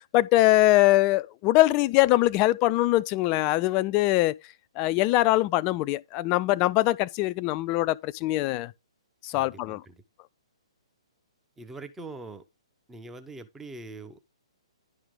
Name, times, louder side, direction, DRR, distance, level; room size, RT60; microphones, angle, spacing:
voice 1, 0.1-4.3 4.8-8.7 9.2-9.8, left 17 dB, 25° left, 0.3 m, -22 dB
voice 2, 9.3-10.0 11.6-12.4 12.9-14.2, right 3 dB, 10° right, 0.6 m, -43 dB
10.5 x 4.8 x 3.6 m
figure-of-eight pair, 125°, 3 cm